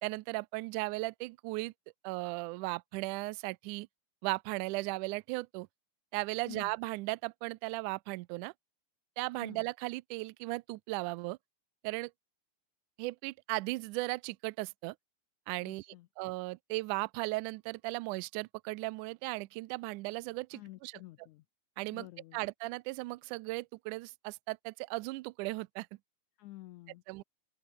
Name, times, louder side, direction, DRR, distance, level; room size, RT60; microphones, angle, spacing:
voice 1, 0.0-1.7 2.0-3.9 4.2-5.7 6.1-8.5 9.2-11.4 11.8-12.1 13.0-14.9 15.5-15.9 16.2-20.9 21.8-22.1 22.3-25.9 27.1-27.2, right 23 dB, 90° right, 1.7 m, -36 dB
voice 2, 15.6-16.1 20.5-21.4 21.9-22.4 26.4-27.0, left 17 dB, 90° left, 1.7 m, -50 dB
open air
omnidirectional pair, 4.2 m